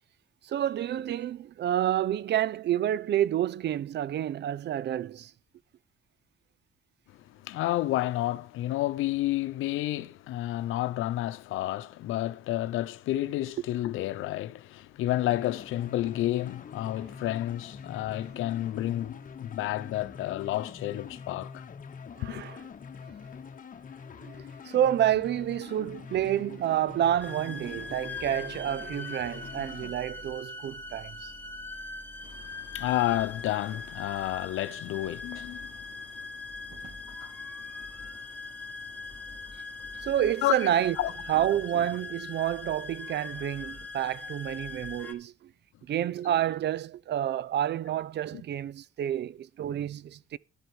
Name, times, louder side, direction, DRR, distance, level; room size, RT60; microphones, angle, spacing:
voice 1, 0.4-5.3 22.2-22.6 24.2-24.3 24.6-31.3 36.7-36.9 40.0-41.0 41.3-45.3 45.9-50.4, right 11 dB, 60° right, 0.6 m, -29 dB
voice 2, 7.4-21.6 22.2-22.4 32.2-36.3 37.0-37.4 38.0-38.1 40.4-40.5 41.0-41.1 48.3-48.4, left 15 dB, 90° left, 0.8 m, -31 dB
sound 1, 15.1-29.9, left 6 dB, 40° left, 1.2 m, -44 dB
sound 2, 27.2-45.1, left 3 dB, 10° left, 2.0 m, -41 dB
12.0 x 7.9 x 6.3 m
cardioid pair, 90°, 20 cm